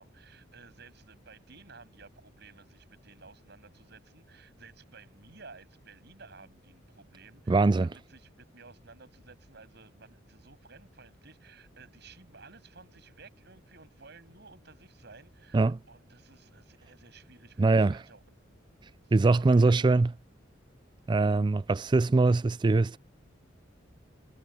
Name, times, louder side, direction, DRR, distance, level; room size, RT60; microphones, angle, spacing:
voice 1, 0.0-18.4 19.0-20.1, right 4 dB, 60° right, 7.9 m, -54 dB
voice 2, 7.5-7.9 15.5-15.8 17.6-18.0 19.1-20.1 21.1-23.0, right 3 dB, 25° right, 0.3 m, -22 dB
head